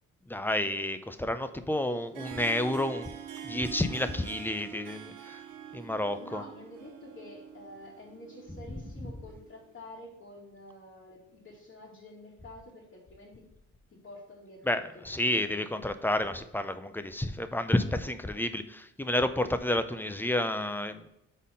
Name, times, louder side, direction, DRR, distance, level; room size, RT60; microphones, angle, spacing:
voice 1, 0.3-3.1 3.4-5.4 5.7-6.4 8.7-8.8 14.7-21.1, left 1 dB, 5° left, 10 dB, 0.5 m, -30 dB
Harp, 1.9-9.6, right 9 dB, 80° right, 0.8 m, -45 dB
voice 2, 6.1-13.5 13.9-14.8 15.1-15.7, left 1 dB, 40° left, -7 dB, 2.1 m, -49 dB
5.5 x 4.2 x 5.1 m, 0.87 s
cardioid pair, 90°, 30 cm